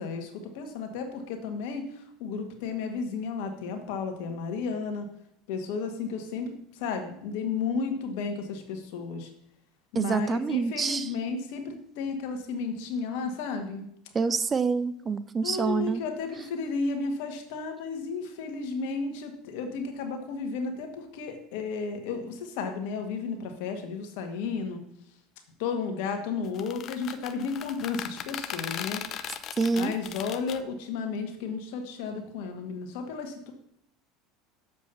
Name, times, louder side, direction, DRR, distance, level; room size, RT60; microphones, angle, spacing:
voice 1, 0.0-5.0 5.5-9.3 9.9-13.9 15.4-24.8 25.6-29.0 29.8-33.5, left 5 dB, 70° left, 5 dB, 1.7 m, -33 dB
voice 2, 9.9-11.1 14.1-16.0 29.6-29.9, right 5 dB, 25° right, 14 dB, 0.6 m, -27 dB
sound 1, 26.4-30.6, left 9 dB, 45° left, 0.7 m, -37 dB
7.2 x 5.2 x 6.9 m, 0.72 s
hypercardioid pair, 95°, 0 cm